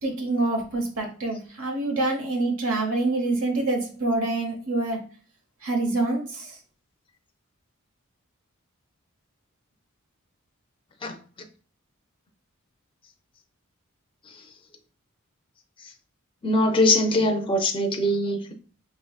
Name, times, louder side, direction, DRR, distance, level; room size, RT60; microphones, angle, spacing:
voice 1, 0.0-5.0 5.6-6.6, right 2 dB, 80° right, 1.1 m, -26 dB
voice 2, 16.4-18.5, left 1 dB, 25° left, 0.5 m, -22 dB
5.4 x 2.9 x 2.4 m
head